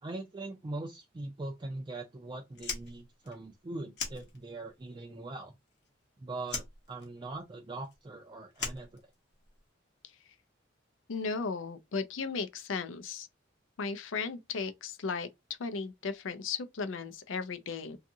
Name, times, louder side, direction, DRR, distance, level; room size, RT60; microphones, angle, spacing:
voice 1, 0.0-5.5 6.2-9.0, right 2 dB, 25° right, 0.3 m, -41 dB
Fire, 2.5-4.8 5.1-6.1 6.4-9.6, left 5 dB, 60° left, 0.8 m, -40 dB
voice 2, 11.1-13.3 13.8-15.3 15.6-18.0, left 4 dB, 85° left, 0.5 m, -35 dB
2.6 x 2.4 x 2.6 m
head